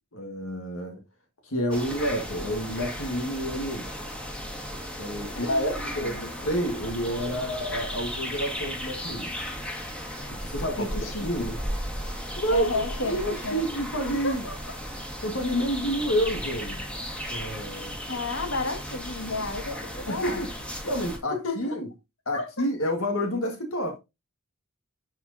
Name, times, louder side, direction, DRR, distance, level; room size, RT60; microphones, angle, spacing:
voice 1, 0.1-1.0 1.4-3.9 5.0-9.4 10.3-11.6 12.3-14.4 15.2-16.8 17.3-18.0 20.1-20.5 20.8-21.9 22.2-24.0, equal, 80° left, 1.6 m, -29 dB
sound 1, 1.7-21.2, equal, 5° left, 1.6 m, -35 dB
voice 2, 5.3-6.3 10.8-11.3 12.5-14.5 18.1-20.5 21.4-21.8 22.3-22.6, left 3 dB, 65° left, 1.8 m, -33 dB
11.0 x 4.5 x 2.7 m
head